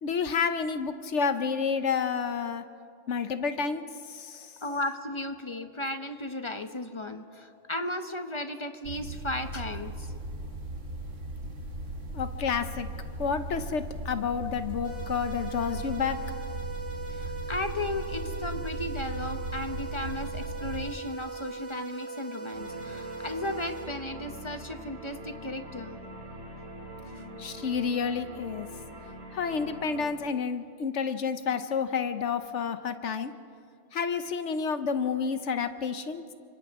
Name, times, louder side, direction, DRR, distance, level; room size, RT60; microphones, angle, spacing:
voice 1, 0.0-2.6 3.1-4.5 12.1-12.9 13.2-16.2 27.4-28.7 29.3-33.3 33.9-36.2, left 6 dB, 70° left, 10 dB, 1.1 m, -30 dB
voice 2, 4.6-10.1 17.1-26.0 27.1-27.2, left 1 dB, 25° left, 7 dB, 1.0 m, -35 dB
sound 1, 8.8-20.9, right 2 dB, 75° right, 1.8 m, -37 dB
sound 2, 14.8-23.8, right 4 dB, 10° left, 5.0 m, -40 dB
sound 3, 22.5-30.1, right 1 dB, 55° right, 2.9 m, -43 dB
29.0 x 25.5 x 3.7 m, 2.3 s
omnidirectional pair, 1.3 m